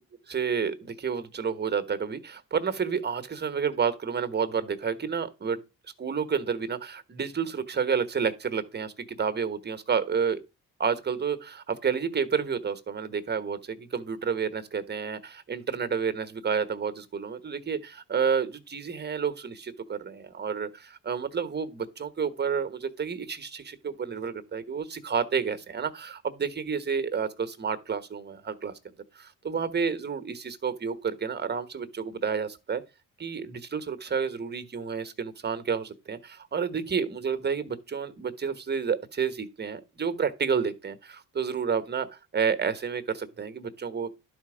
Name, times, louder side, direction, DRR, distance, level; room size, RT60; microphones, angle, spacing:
voice 1, 0.3-5.6 6.0-10.4 10.8-28.7 29.2-32.8 33.2-42.1 42.3-44.1, right 6 dB, 30° right, 1.2 m, -30 dB
11.5 x 4.3 x 5.0 m
cardioid pair, 105°, 34 cm